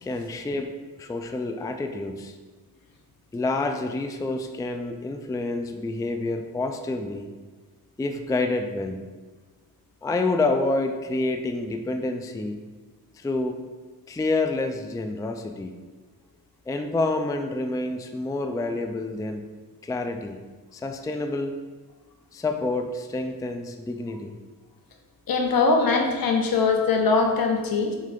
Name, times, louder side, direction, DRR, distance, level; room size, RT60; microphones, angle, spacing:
voice 1, 0.0-0.7 1.0-2.4 3.3-7.3 8.0-9.0 10.0-12.6 13.2-13.6 14.1-15.8 16.7-19.5 19.8-20.4 20.7-21.5 22.3-24.3, left 2 dB, 10° left, 5 dB, 0.3 m, -28 dB
voice 2, 25.3-28.0, left 4 dB, 70° left, 3 dB, 1.0 m, -21 dB
7.5 x 3.2 x 5.1 m, 1.3 s
wide cardioid pair, 130°, 36 cm